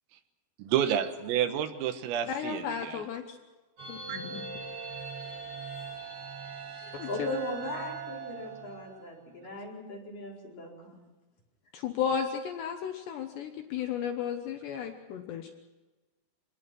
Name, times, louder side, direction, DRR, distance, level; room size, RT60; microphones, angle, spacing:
voice 1, 0.6-3.0 4.1-4.2, right 10 dB, 85° right, 8 dB, 4.1 m, -29 dB
voice 2, 2.3-3.4 3.9-4.4 6.9-7.3 11.7-15.5, left 7 dB, 70° left, 5 dB, 2.9 m, -34 dB
sound 1, 3.8-9.2, right 5 dB, 60° right, 8.5 m, -41 dB
voice 3, 6.8-11.0, left 1 dB, 45° left, -2 dB, 5.8 m, -38 dB
26.5 x 20.0 x 6.2 m, 1.2 s
omnidirectional pair, 5.9 m